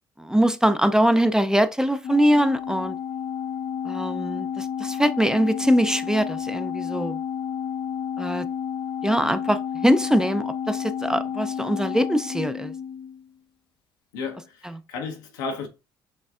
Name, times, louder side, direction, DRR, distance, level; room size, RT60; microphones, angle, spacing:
voice 1, 0.2-3.0 3.8-7.2 8.2-8.5 9.0-12.7, equal, 5° right, 0.5 m, -22 dB
Organ, 2.0-13.3, left 8 dB, 50° left, 0.4 m, -31 dB
voice 2, 14.1-15.7, left 4 dB, 85° left, 1.0 m, -33 dB
6.4 x 3.3 x 2.4 m
hypercardioid pair, 60°, 10 cm